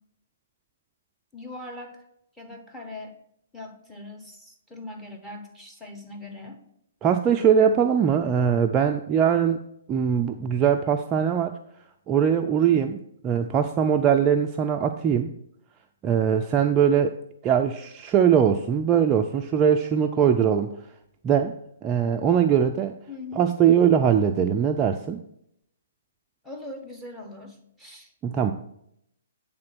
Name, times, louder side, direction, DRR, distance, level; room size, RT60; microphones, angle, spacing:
voice 1, 1.3-2.0 2.4-3.2 3.5-6.6 12.6-12.9 23.1-23.5 26.4-28.1, left 2 dB, 5° left, 3 dB, 1.2 m, -41 dB
voice 2, 7.0-9.6 9.9-11.5 12.1-13.0 13.2-15.3 16.0-17.2 17.4-20.7 21.2-21.5 21.8-22.9 23.4-25.2 28.2-28.5, right 8 dB, 25° right, 5 dB, 0.4 m, -21 dB
8.6 x 3.7 x 6.1 m, 0.76 s
figure-of-eight pair, 130°, 0 cm